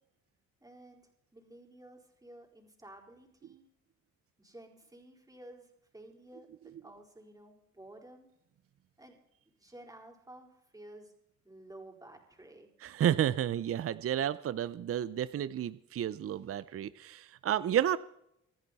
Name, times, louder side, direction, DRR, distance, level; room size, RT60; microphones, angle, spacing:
voice 1, 0.6-3.7 4.4-6.5 6.8-8.3 9.0-9.2 9.6-11.1 11.4-12.7, right 1 dB, 10° right, 1 dB, 4.5 m, -53 dB
voice 2, 12.8-18.0, right 10 dB, 50° right, 16 dB, 0.6 m, -31 dB
26.0 x 10.5 x 4.2 m, 0.76 s
cardioid pair, 90°, 30 cm